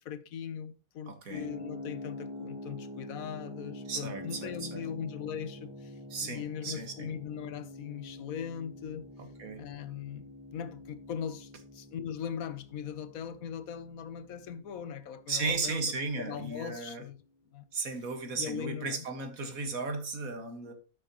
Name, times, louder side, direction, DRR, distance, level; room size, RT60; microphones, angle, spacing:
voice 1, 0.0-9.0 9.6-15.8 16.2-17.2 17.5-17.7 18.3-19.0, left 8 dB, 80° left, 1.3 m, -40 dB
voice 2, 1.1-1.5 3.9-4.9 6.1-7.1 9.4-9.7 15.3-17.0 17.7-20.7, right 4 dB, 80° right, 2.1 m, -35 dB
sound 1, 1.3-16.1, left 1 dB, 25° right, 3.1 m, -46 dB
13.0 x 6.2 x 3.0 m
omnidirectional pair, 1.4 m